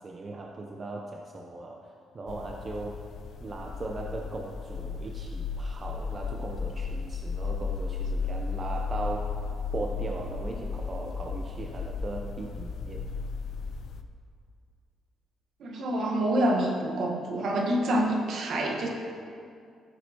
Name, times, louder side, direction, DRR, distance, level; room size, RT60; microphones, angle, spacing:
voice 1, 0.0-1.8 2.1-3.0 3.4-9.3 9.7-13.0, right 2 dB, 40° right, 1 dB, 0.7 m, -38 dB
sound 1, 2.3-14.0, left 5 dB, 65° left, 0.5 m, -34 dB
voice 2, 15.6-18.9, right 1 dB, 65° right, 1 dB, 1.4 m, -27 dB
14.0 x 6.8 x 3.0 m, 2.4 s
cardioid pair, 90°, 0 cm